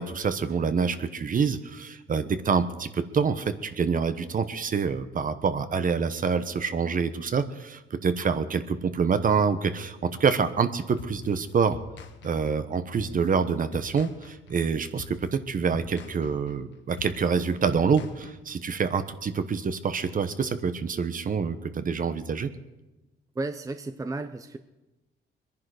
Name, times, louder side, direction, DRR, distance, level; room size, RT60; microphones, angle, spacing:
voice 1, 0.0-11.8 12.2-22.5, right 5 dB, 45° right, 11 dB, 1.1 m, -26 dB
sound 1, 11.0-18.8, left 7 dB, 65° left, 1.2 m, -44 dB
voice 2, 23.3-24.6, right 2 dB, 15° right, 9 dB, 0.7 m, -33 dB
22.5 x 10.5 x 4.9 m, 1.0 s
cardioid pair, 90°, 20 cm